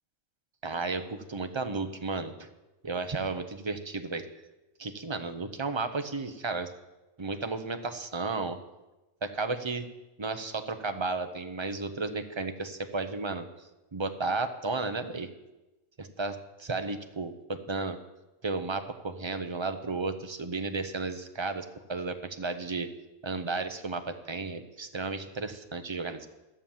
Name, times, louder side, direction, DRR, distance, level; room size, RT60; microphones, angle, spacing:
voice 1, 0.6-2.3 2.8-4.2 4.8-6.7 7.2-8.6 9.2-9.9 10.2-13.5 13.9-15.3 16.0-18.0 18.4-22.9 23.2-26.3, right 3 dB, 25° right, 8 dB, 0.7 m, -33 dB
14.0 x 7.1 x 7.4 m, 1.0 s
omnidirectional pair, 1.4 m